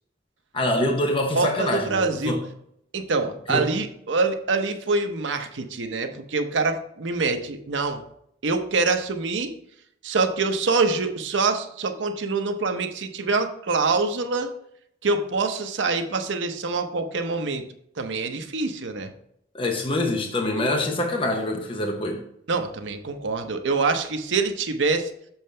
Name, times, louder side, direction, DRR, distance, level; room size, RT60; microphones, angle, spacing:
voice 1, 0.5-2.5 3.5-3.7 19.5-22.2, left 1 dB, 30° left, 0.8 m, -25 dB
voice 2, 1.3-2.4 2.9-8.1 8.4-9.5 10.0-14.5 15.0-17.6 18.0-19.1 22.5-25.1, right 3 dB, 80° right, 0.7 m, -25 dB
7.0 x 5.5 x 3.3 m
head